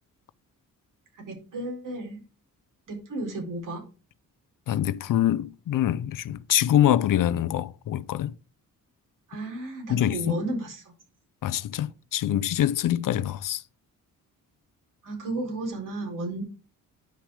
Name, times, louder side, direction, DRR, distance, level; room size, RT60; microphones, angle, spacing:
voice 1, 1.1-2.2 2.9-3.8 9.3-10.9 15.0-16.4, right 2 dB, 65° right, 4.5 m, -33 dB
voice 2, 4.7-8.3 9.9-10.4 11.4-13.6, left 11 dB, 70° left, 0.6 m, -25 dB
9.9 x 6.1 x 5.0 m
cardioid pair, 115°, 33 cm